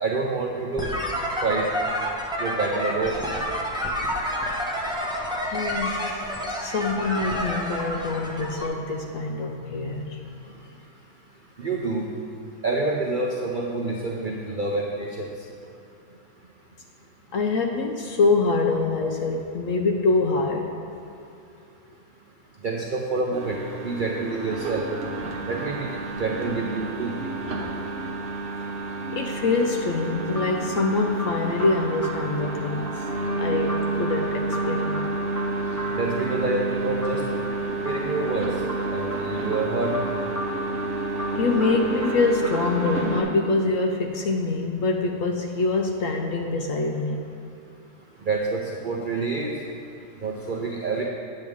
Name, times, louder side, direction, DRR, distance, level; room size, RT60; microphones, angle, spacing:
voice 1, 0.0-0.9 1.4-1.7 2.4-3.2 11.6-12.0 12.6-15.1 22.6-23.6 23.8-24.8 25.5-25.9 26.1-27.1 35.9-37.2 37.8-38.5 38.9-39.9 48.3-49.5 50.2-51.0, right 3 dB, 85° right, -1 dB, 0.4 m, -27 dB
sound 1, 0.8-8.7, equal, 5° right, 0.4 m, -29 dB
voice 2, 5.5-6.2 6.6-10.5 17.3-20.8 29.1-33.0 33.3-35.1 41.3-47.2, left 3 dB, 70° left, 3 dB, 0.8 m, -25 dB
sound 2, 23.3-43.2, right 2 dB, 45° right, 1.1 m, -30 dB
sound 3, 30.3-43.3, equal, 15° left, 0.9 m, -37 dB
8.9 x 7.6 x 3.6 m, 2.7 s
omnidirectional pair, 1.7 m